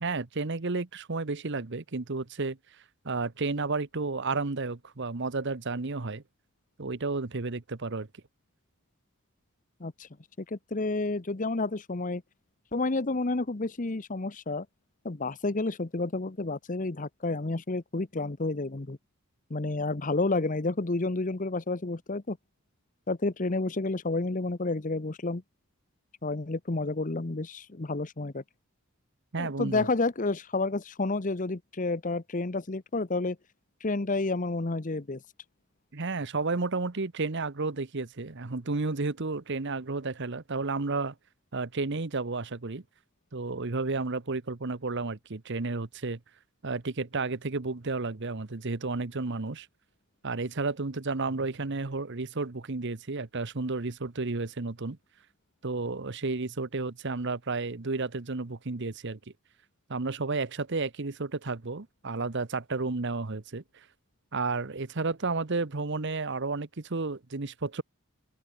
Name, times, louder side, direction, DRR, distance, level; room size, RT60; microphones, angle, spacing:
voice 1, 0.0-2.6 3.0-6.2 6.8-8.1 29.3-29.9 35.9-41.1 41.5-42.8 43.3-46.2 46.6-49.7 50.2-55.0 55.6-59.2 59.9-63.6 64.3-67.8, right 3 dB, 55° right, 1.0 m, -32 dB
voice 2, 10.5-12.2 12.7-14.7 15.0-19.0 19.5-22.4 23.1-25.4 26.2-28.4 29.4-33.4 33.8-35.2, left 2 dB, 35° left, 0.9 m, -30 dB
head